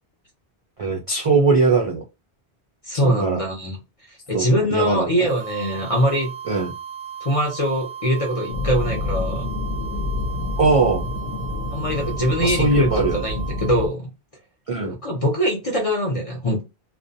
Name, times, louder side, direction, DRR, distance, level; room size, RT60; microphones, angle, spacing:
voice 1, 0.8-2.0 3.0-3.4 4.3-5.1 6.5-6.7 10.6-11.0 12.4-13.2 14.7-14.9, right 3 dB, 55° right, 0.3 m, -20 dB
voice 2, 2.8-3.8 4.1-6.3 7.2-9.5 11.7-14.1 14.8-16.6, equal, 45° left, 0.5 m, -23 dB
sound 1, 5.3-13.9, right 8 dB, 85° right, 0.9 m, -36 dB
sound 2, 8.5-13.9, left 2 dB, 70° left, 0.8 m, -28 dB
2.4 x 2.0 x 2.5 m
omnidirectional pair, 1.1 m